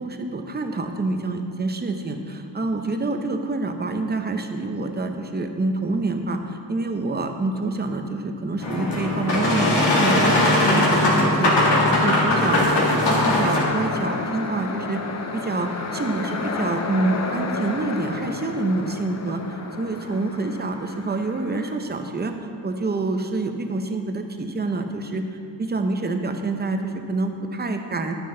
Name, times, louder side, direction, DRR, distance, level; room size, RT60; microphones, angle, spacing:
voice 1, 0.0-15.0 15.3-19.4 19.8-25.2 25.6-28.2, right 2 dB, 20° right, 5 dB, 0.6 m, -27 dB
Boat Water vehicle, 8.6-13.6, left 1 dB, 65° left, 2.2 m, -19 dB
sound 1, 10.4-21.7, left 4 dB, 35° left, 0.7 m, -32 dB
11.5 x 9.4 x 3.8 m, 2.3 s
wide cardioid pair, 165°, 46 cm